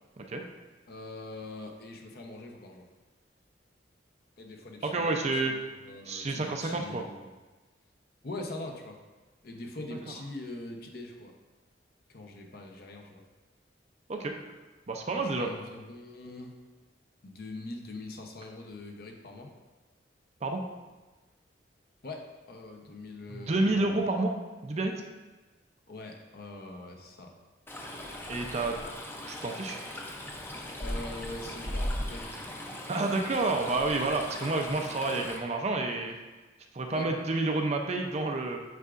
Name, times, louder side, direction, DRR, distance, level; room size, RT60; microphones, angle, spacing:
voice 1, 0.9-2.9 4.4-7.3 8.2-9.0 9.4-11.3 12.1-13.2 15.1-16.5 17.2-19.5 22.0-24.0 25.9-27.3 30.8-32.3 36.9-37.1, left 2 dB, 55° left, 2 dB, 0.8 m, -43 dB
voice 2, 4.8-5.5 6.0-7.0 14.1-14.4 14.9-15.5 20.4-20.6 23.3-24.3 24.6-24.9 28.3-28.8 29.3-29.8 32.9-36.1 36.7-38.6, right 2 dB, 35° right, 3 dB, 0.5 m, -29 dB
Stream, 27.7-35.4, left 1 dB, 15° left, 0.6 m, -38 dB
8.1 x 4.7 x 2.5 m, 1.2 s
head